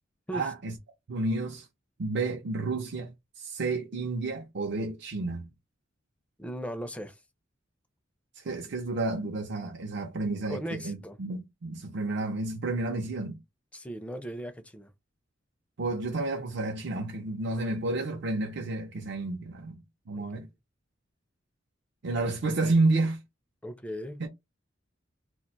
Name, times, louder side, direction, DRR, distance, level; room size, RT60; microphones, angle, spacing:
voice 1, 0.3-0.7 1.1-1.7 2.0-5.5 8.4-13.4 15.8-19.8 20.1-20.5 22.0-23.2 24.2-24.3, right 2 dB, 60° right, 0.5 m, -30 dB
voice 2, 6.4-7.2 10.5-11.2 13.7-14.9 20.2-20.3 23.6-24.3, equal, 5° left, 0.4 m, -37 dB
2.4 x 2.2 x 3.9 m
head